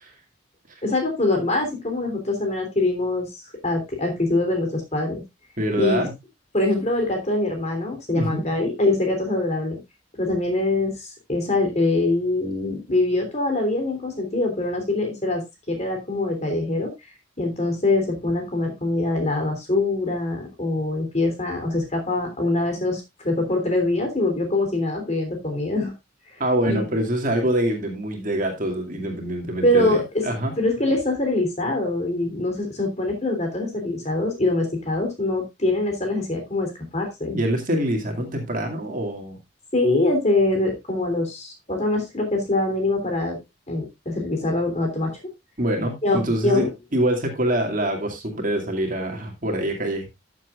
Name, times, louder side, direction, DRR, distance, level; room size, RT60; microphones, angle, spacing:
voice 1, 0.8-3.3 3.6-5.2 5.8-6.0 6.5-9.8 10.2-16.9 17.4-25.9 26.7-26.8 29.6-30.2 30.6-37.4 39.7-43.4 43.7-45.2 46.0-46.7, left 2 dB, 35° left, 4 dB, 3.2 m, -24 dB
voice 2, 5.6-6.1 8.1-8.4 26.4-30.5 37.3-39.4 45.6-46.6 46.9-50.1, right 1 dB, 40° right, 2 dB, 2.4 m, -25 dB
14.0 x 7.4 x 2.5 m, 0.20 s
head